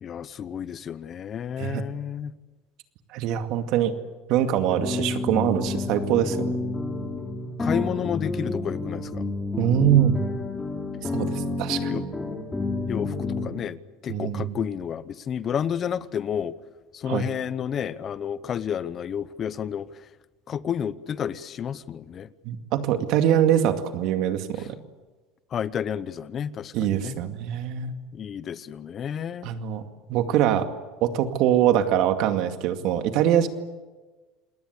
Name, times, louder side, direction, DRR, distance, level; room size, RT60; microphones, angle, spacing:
voice 1, 0.0-2.3 7.6-9.2 11.9-12.0 12.9-13.8 14.0-16.5 16.9-19.9 20.5-22.3 25.5-27.2 28.1-29.5, left 8 dB, 35° left, 16 dB, 0.9 m, -31 dB
voice 2, 3.1-3.9 4.3-6.6 9.6-10.3 11.1-11.9 14.1-14.5 17.1-17.3 22.4-24.8 26.7-28.0 29.4-29.8 30.1-30.7 31.0-33.5, right 10 dB, 60° right, 7 dB, 2.2 m, -23 dB
sound 1, 4.7-13.5, left 3 dB, 15° left, 3.4 m, -29 dB
28.0 x 19.5 x 8.4 m, 1.3 s
supercardioid pair, 110°, 0 cm